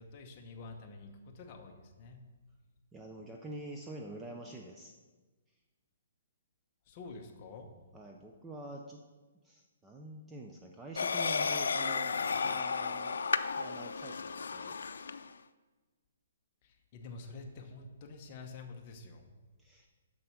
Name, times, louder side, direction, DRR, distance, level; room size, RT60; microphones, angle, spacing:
voice 1, 0.0-2.2 6.9-7.7 16.6-19.3, left 3 dB, 25° left, 3 dB, 0.9 m, -48 dB
voice 2, 2.9-4.9 7.9-9.0 9.4-13.2 13.6-14.8 19.6-19.9, right 1 dB, 5° right, 1 dB, 0.4 m, -46 dB
sound 1, 11.0-15.3, left 5 dB, 90° left, 0.4 m, -33 dB
7.7 x 6.3 x 5.8 m, 1.3 s
hypercardioid pair, 175°, 0 cm